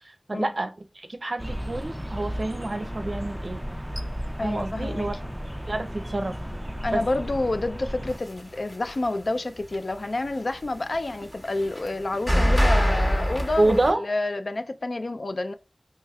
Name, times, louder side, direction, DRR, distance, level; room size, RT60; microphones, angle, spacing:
voice 1, 0.0-3.6 4.4-5.2 5.7-6.3 6.9-7.0 13.6-14.0, right 2 dB, 65° right, 0.5 m, -27 dB
sound 1, 1.4-8.2, equal, ahead, 0.4 m, -34 dB
voice 2, 4.4-5.1 6.8-15.5, left 2 dB, 75° left, 0.3 m, -29 dB
sound 2, 8.2-9.3 9.6-13.9, equal, 25° left, 1.2 m, -24 dB
4.8 x 3.1 x 2.3 m
wide cardioid pair, 45°, 0 cm